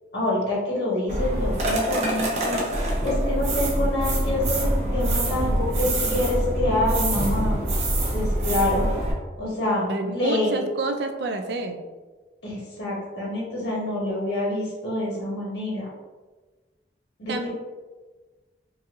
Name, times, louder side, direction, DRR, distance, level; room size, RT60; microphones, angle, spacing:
voice 1, 0.1-2.6 3.0-7.6 8.1-8.9 9.4-9.8 10.1-10.6 12.4-15.9 17.2-17.3, left 1 dB, 85° left, -5 dB, 1.4 m, -26 dB
sound 1, 1.1-9.1, right 1 dB, 40° right, 0.7 m, -25 dB
voice 2, 9.9-11.8 17.3-17.5, right 2 dB, 70° right, 6 dB, 0.4 m, -28 dB
4.0 x 2.6 x 2.5 m, 1.3 s
head